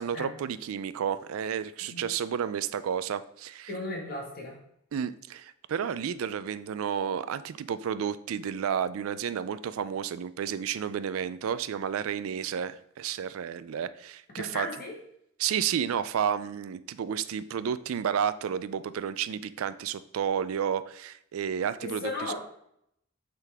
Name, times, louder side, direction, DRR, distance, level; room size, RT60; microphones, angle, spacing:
voice 1, 0.0-3.7 4.9-14.7 15.4-22.3, right 8 dB, 80° right, 14 dB, 0.4 m, -31 dB
voice 2, 3.7-4.6 14.3-14.9 21.8-22.3, left 2 dB, 45° left, 0 dB, 1.7 m, -35 dB
8.1 x 3.9 x 3.5 m, 0.74 s
head